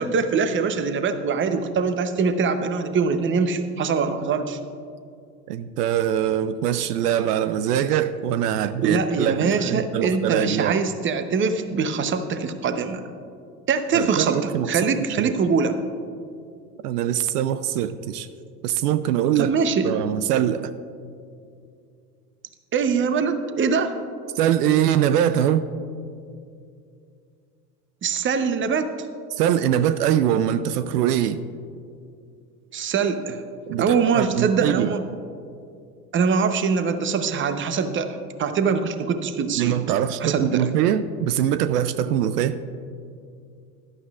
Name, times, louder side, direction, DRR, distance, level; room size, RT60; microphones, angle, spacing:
voice 1, 0.0-4.6 8.8-13.0 13.7-15.8 19.4-19.9 22.7-23.9 28.0-28.9 32.7-33.4 33.8-35.0 36.1-39.8 40.2-40.7, right 5 dB, 25° right, 9 dB, 0.8 m, -23 dB
voice 2, 5.5-10.8 13.9-14.8 15.2-15.3 16.8-18.3 18.6-19.5 19.8-20.7 24.4-25.7 29.3-31.4 33.7-34.9 39.6-42.6, right 10 dB, 75° right, 13 dB, 0.6 m, -23 dB
16.0 x 11.5 x 2.4 m, 2.4 s
hypercardioid pair, 80°, 47 cm